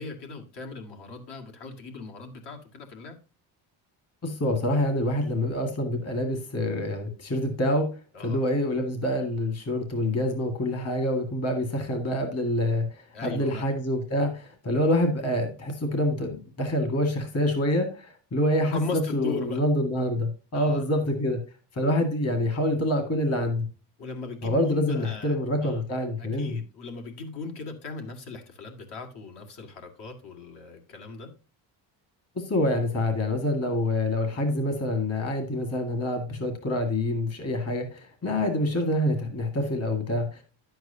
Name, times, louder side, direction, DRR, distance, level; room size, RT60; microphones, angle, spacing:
voice 1, 0.0-3.2 8.1-8.4 13.1-13.6 18.7-19.6 20.5-20.8 24.0-25.4 25.6-25.8 26.2-31.3 38.2-38.4, left 4 dB, 60° left, 2.2 m, -38 dB
voice 2, 4.2-7.9 8.2-21.4 21.7-23.7 24.4-26.6 32.4-40.4, left 1 dB, 35° left, 1.9 m, -26 dB
10.5 x 7.9 x 2.7 m
cardioid pair, 150°, 45 cm